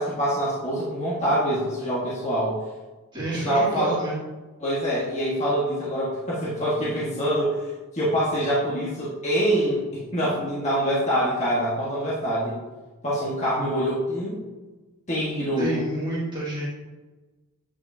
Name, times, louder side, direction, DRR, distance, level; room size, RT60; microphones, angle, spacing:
voice 1, 0.0-2.6 3.3-4.0 4.6-7.6 7.9-12.6 13.0-14.4 15.1-15.7, equal, 30° left, -7 dB, 1.3 m, -25 dB
voice 2, 3.1-4.2 15.6-16.7, right 1 dB, 20° right, -8 dB, 2.2 m, -29 dB
8.7 x 5.3 x 2.7 m, 1.2 s
head